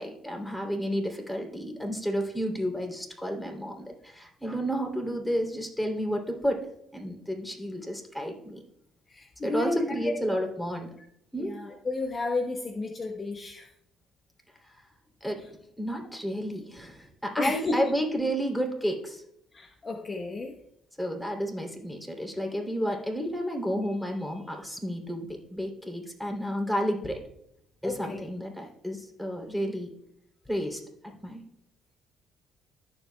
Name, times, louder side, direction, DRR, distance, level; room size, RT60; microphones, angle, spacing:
voice 1, 0.0-6.6 6.9-8.6 9.4-10.9 11.3-11.6 14.6-14.8 15.2-15.4 15.8-19.2 21.0-27.2 27.8-29.9 30.5-30.8 31.2-31.4, equal, 5° left, 2 dB, 3.1 m, -31 dB
voice 2, 9.1-10.1 11.4-13.7 17.4-17.9 19.5-20.5 22.4-22.5 27.8-28.2, left 2 dB, 35° left, 3 dB, 1.1 m, -32 dB
13.5 x 7.1 x 2.3 m, 0.76 s
hypercardioid pair, 50°, 0 cm